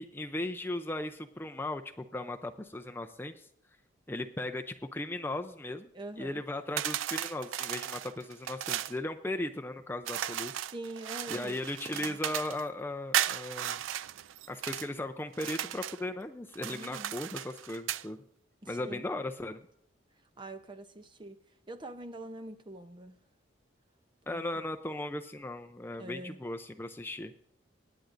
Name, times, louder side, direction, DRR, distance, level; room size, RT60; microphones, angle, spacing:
voice 1, 0.0-3.5 4.1-5.9 6.2-10.7 11.3-13.8 14.5-18.2 18.7-19.6 24.3-27.3, left 1 dB, 10° left, 6 dB, 0.5 m, -37 dB
voice 2, 5.9-6.4 10.5-11.6 11.9-12.2 16.7-17.2 18.6-19.0 20.4-21.4 21.7-23.2 24.3-24.4 26.0-26.4, right 1 dB, 25° right, 8 dB, 0.7 m, -44 dB
sound 1, 6.8-9.0 10.0-12.6 13.1-14.9 15.3-16.0 16.5-18.1, right 11 dB, 90° right, 0.4 m, -35 dB
24.0 x 10.0 x 2.6 m, 0.74 s
head